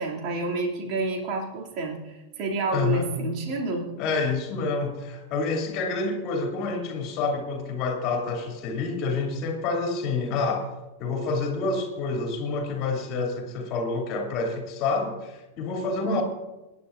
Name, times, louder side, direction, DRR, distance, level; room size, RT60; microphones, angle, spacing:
voice 1, 0.0-3.9 16.0-16.2, right 3 dB, 40° right, -1 dB, 2.6 m, -29 dB
voice 2, 2.7-3.1 4.0-10.7 11.0-16.2, left 4 dB, 40° left, 2 dB, 2.7 m, -28 dB
26.5 x 10.0 x 2.5 m, 1.1 s
figure-of-eight pair, 90°, 0 cm